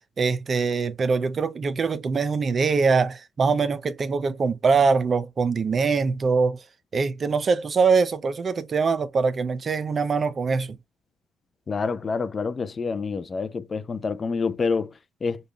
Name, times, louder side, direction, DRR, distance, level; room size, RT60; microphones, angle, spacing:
voice 1, 0.2-6.6 6.9-10.8, right 5 dB, 40° right, 0.5 m, -23 dB
voice 2, 11.7-15.5, left 4 dB, 35° left, 0.5 m, -28 dB
5.1 x 2.3 x 2.3 m
supercardioid pair, 75°, 0 cm